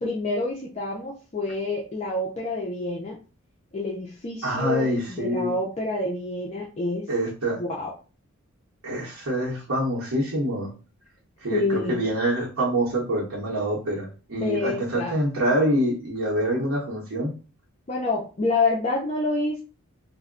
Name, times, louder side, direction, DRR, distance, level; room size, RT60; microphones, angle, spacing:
voice 1, 0.0-3.2 3.7-7.1 7.5-7.9 11.5-12.0 14.4-15.2 17.9-19.6, left 2 dB, 30° left, -2 dB, 0.4 m, -27 dB
voice 2, 4.4-5.5 7.1-7.6 8.8-10.7 11.4-17.3, right 1 dB, 65° right, -5 dB, 0.9 m, -26 dB
2.2 x 2.1 x 3.6 m, 0.35 s
head